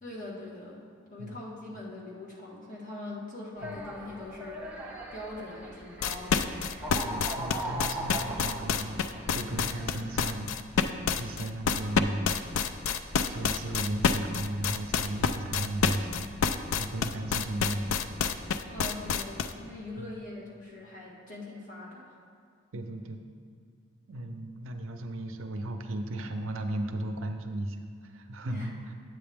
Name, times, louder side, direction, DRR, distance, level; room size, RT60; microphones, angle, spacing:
voice 1, 0.0-6.5 9.9-10.0 18.7-22.1 28.4-28.8, left 2 dB, 35° left, -4 dB, 1.5 m, -42 dB
sound 1, 3.6-10.4, right 1 dB, 5° right, 0.7 m, -40 dB
sound 2, 6.0-19.5, left 6 dB, 70° left, 0.3 m, -28 dB
voice 2, 7.0-9.0 9.3-10.9 11.2-12.3 13.3-16.3 16.7-18.4 20.0-20.1 22.7-23.2 24.1-28.8, right 1 dB, 70° right, 6 dB, 0.6 m, -35 dB
8.6 x 7.9 x 3.5 m, 2.2 s
head